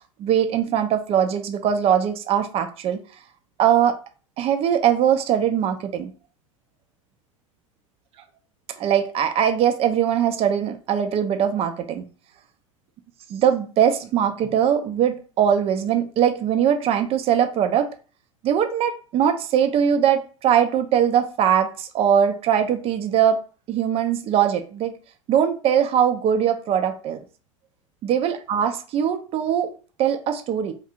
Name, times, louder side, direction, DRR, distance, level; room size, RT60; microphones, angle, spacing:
voice 1, 0.2-3.0 3.6-4.0 4.4-6.1 8.8-12.1 13.3-17.9 18.4-23.4 23.7-24.9 25.3-27.2 28.0-29.7 30.0-30.7, right 9 dB, 35° right, 0.6 m, -21 dB
4.4 x 2.6 x 2.5 m
figure-of-eight pair, 80°, 17 cm